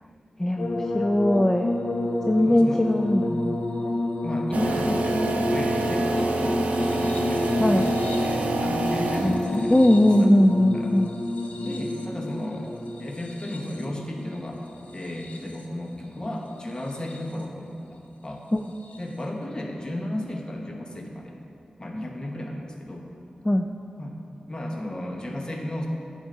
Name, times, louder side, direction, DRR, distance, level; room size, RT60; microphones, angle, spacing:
voice 1, 0.4-1.7 2.3-3.5 7.6-7.9 9.2-11.1 18.5-18.6 23.4-23.7, left 1 dB, 15° left, 5 dB, 0.3 m, -20 dB
sound 1, 0.6-15.8 16.7-17.4 18.8-19.0, left 1 dB, 70° left, 0.7 m, -30 dB
voice 2, 2.4-2.8 4.2-9.8 10.2-10.3 10.7-10.9 11.6-18.4 19.0-21.3 21.8-23.1 24.0-24.2 24.5-25.9, left 1 dB, 35° left, 1 dB, 1.0 m, -33 dB
sound 2, 4.5-9.7, right 2 dB, 80° right, 0.5 m, -27 dB
8.8 x 5.1 x 3.9 m, 2.6 s
cardioid pair, 50°, 3 cm